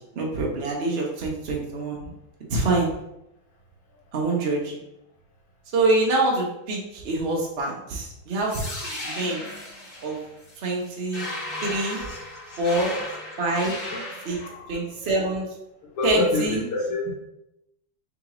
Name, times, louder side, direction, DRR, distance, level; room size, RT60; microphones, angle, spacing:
voice 1, 0.1-2.1 2.5-2.9 4.1-4.8 5.7-8.6 9.0-9.4 10.0-10.2 10.6-11.3 11.6-12.1 12.6-12.9 13.4-13.8 14.2-14.4 14.7-15.5 16.0-16.6, right 2 dB, 85° right, -2 dB, 0.5 m, -25 dB
sound 1, 8.5-14.5, left 1 dB, 30° left, 1.6 m, -35 dB
voice 2, 11.9-13.1 13.5-13.7 14.2-14.7 15.8-17.0, left 2 dB, 85° left, -5 dB, 1.8 m, -29 dB
3.9 x 3.0 x 3.7 m, 0.85 s
omnidirectional pair, 2.4 m